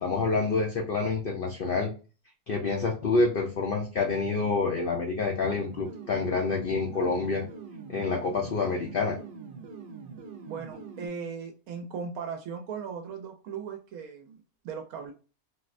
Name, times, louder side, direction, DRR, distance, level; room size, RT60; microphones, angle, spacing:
voice 1, 0.0-1.9 2.5-7.5 7.9-9.2, left 4 dB, 60° left, 1 dB, 0.6 m, -27 dB
sound 1, 5.4-11.1, right 5 dB, 65° right, 0.5 m, -44 dB
voice 2, 10.4-15.1, right 6 dB, 80° right, 4 dB, 1.0 m, -38 dB
4.2 x 2.1 x 2.4 m, 0.35 s
omnidirectional pair, 1.5 m